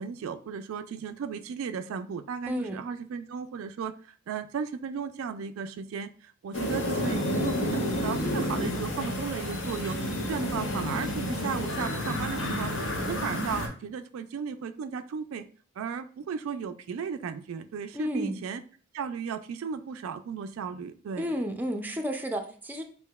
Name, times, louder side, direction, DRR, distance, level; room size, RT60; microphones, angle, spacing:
voice 1, 0.0-12.7 13.0-15.5 15.8-18.6 18.9-21.3, right 6 dB, 75° right, 11 dB, 0.3 m, -35 dB
voice 2, 2.5-2.8 17.9-18.4 21.2-22.8, equal, 10° right, 3 dB, 0.4 m, -31 dB
sound 1, 6.5-13.7, left 1 dB, 80° left, 0.9 m, -30 dB
6.5 x 2.7 x 2.2 m, 0.42 s
head